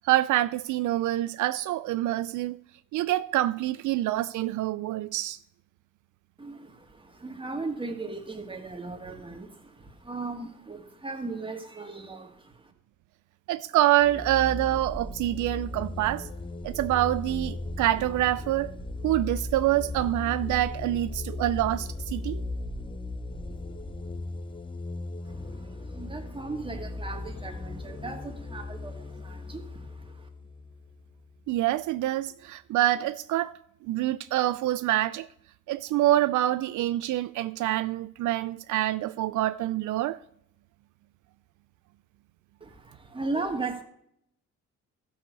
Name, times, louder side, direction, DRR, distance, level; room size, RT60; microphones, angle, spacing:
voice 1, 0.0-2.6 2.9-5.4 13.5-16.3 16.6-18.7 19.0-22.4 31.5-33.5 33.8-35.3 35.7-40.2, right 14 dB, 75° right, 0.5 m, -26 dB
voice 2, 6.4-12.7 25.2-30.3 42.6-43.8, right 3 dB, 15° right, 2.0 m, -37 dB
sound 1, 14.0-31.4, left 2 dB, 15° left, 0.6 m, -38 dB
sound 2, 14.7-24.2, right 1 dB, ahead, 2.4 m, -43 dB
13.0 x 6.5 x 5.2 m
cardioid pair, 90°, 30 cm